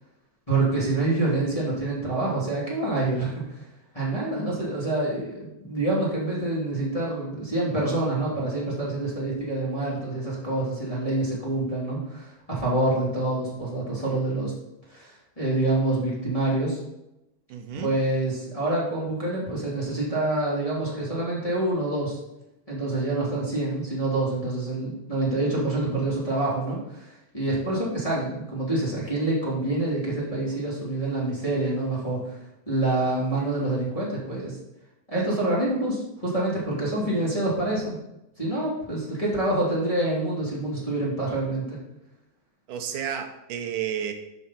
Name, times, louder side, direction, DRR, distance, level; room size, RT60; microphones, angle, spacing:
voice 1, 0.5-3.6 3.9-14.5 14.9-16.8 17.8-22.2 22.7-32.4 32.7-34.6 35.1-38.0 38.4-41.8, right 2 dB, 10° left, -7 dB, 2.4 m, -26 dB
voice 2, 17.5-17.9 42.7-44.1, right 9 dB, 85° right, 5 dB, 2.5 m, -31 dB
11.0 x 5.7 x 4.3 m, 0.89 s
omnidirectional pair, 3.6 m